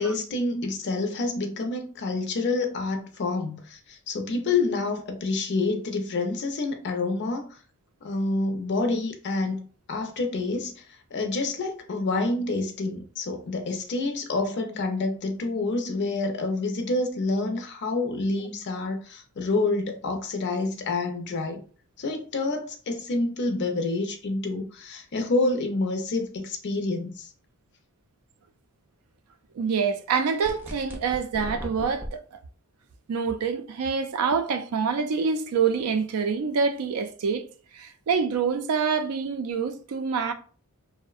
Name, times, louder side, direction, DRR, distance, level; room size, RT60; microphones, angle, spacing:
voice 1, 0.0-7.5 8.0-10.8 11.1-21.6 22.0-27.3, left 3 dB, 50° left, 0.5 m, -28 dB
voice 2, 29.6-32.4 33.1-37.5 37.7-40.3, right 5 dB, 90° right, 0.4 m, -26 dB
sound 1, 30.4-32.1, equal, 10° right, 0.3 m, -37 dB
2.6 x 2.0 x 2.3 m
head